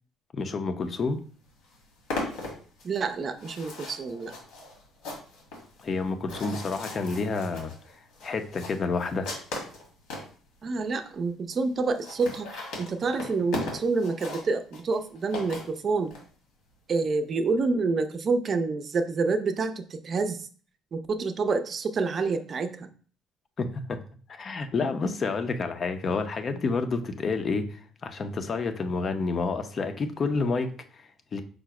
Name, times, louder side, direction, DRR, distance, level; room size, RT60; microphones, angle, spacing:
voice 1, 0.3-1.2 5.8-7.7 8.2-9.3 23.6-24.0 24.4-31.4, left 4 dB, 40° left, 0.6 m, -29 dB
sound 1, 1.1-1.2 1.5-10.3 10.9-11.0 11.2-11.3 11.5-11.6 11.9-16.2, left 2 dB, 90° left, 1.5 m, -38 dB
voice 2, 2.8-4.3 10.6-16.1 16.9-20.5 20.9-22.9, right 4 dB, 45° right, 0.5 m, -28 dB
4.9 x 2.1 x 4.7 m
cardioid pair, 95°, 0 cm